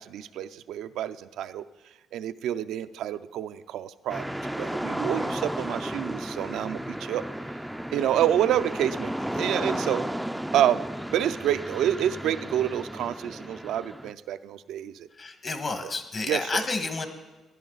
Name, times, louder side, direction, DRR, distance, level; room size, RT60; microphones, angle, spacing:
voice 1, 0.1-1.6 2.1-4.2 4.6-7.2 7.9-10.0 10.5-15.1 15.8-15.9 16.3-16.6, right 11 dB, 80° right, 11 dB, 0.4 m, -28 dB
sound 1, 4.1-14.1, right 1 dB, 5° right, 0.4 m, -33 dB
voice 2, 15.2-17.1, left 3 dB, 40° left, 7 dB, 1.5 m, -30 dB
16.0 x 11.5 x 4.0 m, 1.2 s
cardioid pair, 90°, 0 cm